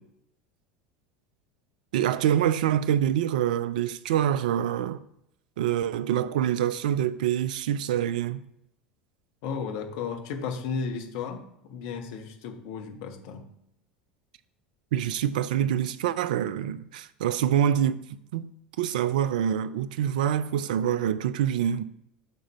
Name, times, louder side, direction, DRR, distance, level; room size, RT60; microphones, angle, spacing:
voice 1, 1.9-5.0 5.6-8.4 14.9-18.0 18.3-18.5 18.8-21.8, right 10 dB, 60° right, 0.4 m, -25 dB
voice 2, 9.4-13.5, left 5 dB, 55° left, 1.0 m, -34 dB
5.4 x 3.7 x 5.5 m
figure-of-eight pair, 75°, 5 cm